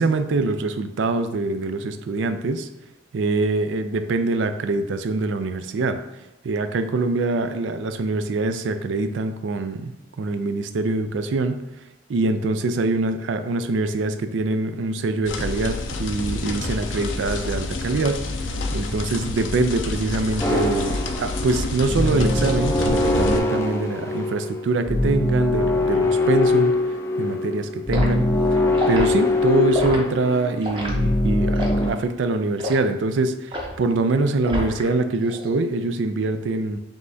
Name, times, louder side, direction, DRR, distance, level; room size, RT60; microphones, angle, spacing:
voice 1, 0.0-2.7 3.1-6.0 6.4-9.9 10.2-11.6 12.1-18.2 18.7-26.7 27.2-28.6 28.9-36.8, right 3 dB, 80° right, 8 dB, 0.4 m, -24 dB
sound 1, 15.3-23.4, left 3 dB, 85° left, 0.5 m, -28 dB
sound 2, 20.4-31.9, left 2 dB, 15° left, 0.4 m, -22 dB
Liquid, 27.9-28.1 28.7-29.1 29.7-30.0 30.6-30.9 31.5-31.8 32.6-32.8 33.5-33.8 34.5-34.9 35.2-35.5, equal, 25° right, 0.7 m, -28 dB
5.3 x 3.3 x 2.7 m, 0.95 s
head